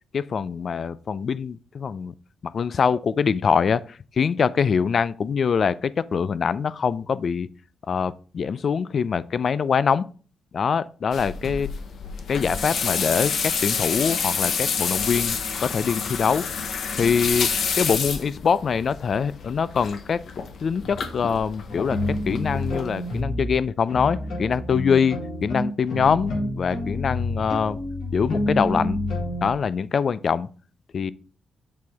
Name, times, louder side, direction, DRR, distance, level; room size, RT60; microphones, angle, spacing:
voice 1, 0.1-2.1 2.4-7.5 7.9-10.1 10.5-11.7 12.3-16.5 16.9-17.5 17.8-20.2 20.6-27.8 28.1-29.0 29.4-30.5 30.9-31.1, left 6 dB, 45° left, 0.3 m, -24 dB
sound 1, 11.1-23.2, left 6 dB, 60° left, 0.9 m, -29 dB
sound 2, 20.8-21.1 21.7-23.5 23.9-29.5, left 1 dB, 85° left, 4.3 m, -28 dB
7.5 x 6.2 x 3.5 m
wide cardioid pair, 150°, 0 cm